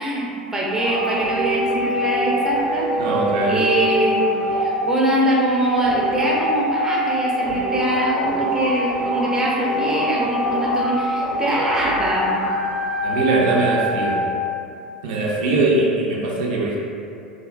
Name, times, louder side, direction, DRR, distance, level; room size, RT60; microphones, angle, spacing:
voice 1, 0.0-2.9 3.5-4.2 4.5-12.4, right 1 dB, 10° right, -4 dB, 0.5 m, -23 dB
sound 1, 0.7-14.2, equal, 60° left, 1.4 m, -24 dB
voice 2, 3.0-3.6 13.0-14.2 15.0-16.8, right 2 dB, 60° right, -4 dB, 0.5 m, -21 dB
3.5 x 2.0 x 2.4 m, 2.6 s
figure-of-eight pair, 85°, 5 cm